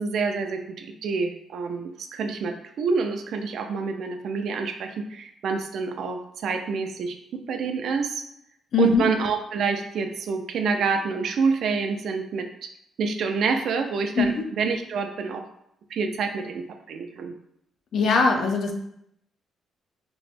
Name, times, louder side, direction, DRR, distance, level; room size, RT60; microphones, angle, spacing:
voice 1, 0.0-8.2 8.8-12.7 13.0-15.4 15.9-17.3, right 4 dB, 60° right, 5 dB, 0.4 m, -27 dB
voice 2, 8.7-9.1 14.2-14.3 17.9-18.7, left 4 dB, 55° left, 3 dB, 0.5 m, -21 dB
3.0 x 2.6 x 3.2 m, 0.75 s
cardioid pair, 155°, 0 cm